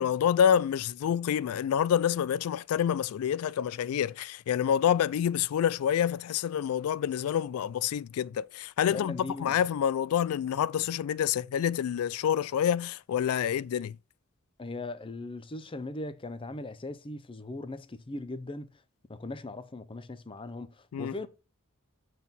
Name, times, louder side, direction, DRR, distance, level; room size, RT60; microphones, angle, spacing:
voice 1, 0.0-14.0 20.9-21.1, left 9 dB, 75° left, 0.3 m, -27 dB
voice 2, 8.9-9.6 14.6-18.7 19.1-21.3, left 2 dB, 25° left, 0.6 m, -39 dB
7.2 x 4.1 x 5.5 m
head